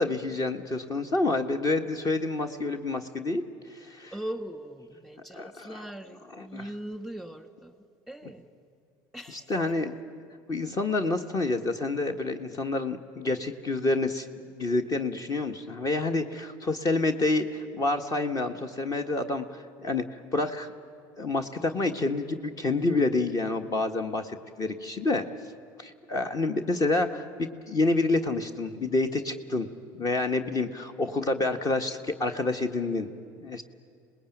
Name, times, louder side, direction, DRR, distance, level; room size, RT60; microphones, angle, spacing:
voice 1, 0.0-3.4 3.7-4.1 5.3-5.8 6.4-6.7 9.5-9.9 10.5-14.3 14.5-20.0 20.3-20.7 21.2-25.2 25.8-29.7 30.0-33.1 33.4-33.6, left 2 dB, 35° left, 7 dB, 1.5 m, -28 dB
voice 2, 4.1-7.8 8.1-8.5 9.1-9.5, right 1 dB, ahead, 9 dB, 1.8 m, -40 dB
25.5 x 20.0 x 9.2 m, 2.3 s
supercardioid pair, 95°, 11 cm